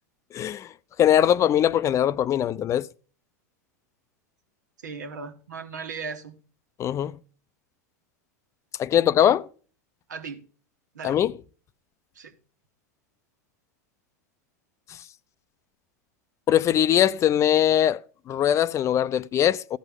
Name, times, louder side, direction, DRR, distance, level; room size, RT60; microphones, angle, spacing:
voice 1, 0.3-0.7 1.0-2.9 6.8-7.2 8.8-9.5 11.0-11.3 16.5-18.0 18.3-19.8, left 10 dB, 30° left, 0.5 m, -21 dB
voice 2, 4.8-6.3 10.1-10.4 10.9-11.2 12.1-12.3, right 5 dB, 85° right, 1.7 m, -37 dB
15.0 x 6.2 x 3.6 m
hypercardioid pair, 100°, 9 cm